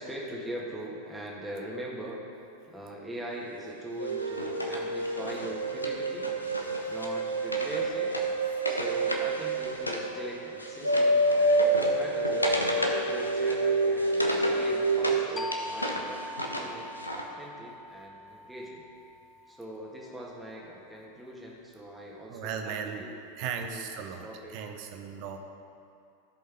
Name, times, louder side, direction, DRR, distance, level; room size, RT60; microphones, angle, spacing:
voice 1, 0.0-2.2 2.7-6.3 6.9-8.1 8.7-12.5 13.0-18.8 19.5-23.4 23.7-23.9 24.2-24.6, right 1 dB, 5° right, -3 dB, 1.7 m, -41 dB
Wood, 4.0-10.1 10.4-15.2 15.5-17.2, equal, 85° left, 0.8 m, -35 dB
sound 1, 4.0-15.3, right 2 dB, 90° right, 0.7 m, -28 dB
sound 2, 15.4-20.7, left 1 dB, 15° left, 0.5 m, -42 dB
voice 2, 22.3-23.0 23.4-25.4, right 7 dB, 45° right, 4 dB, 0.9 m, -36 dB
15.0 x 5.3 x 3.5 m, 2.5 s
figure-of-eight pair, 90°, 0 cm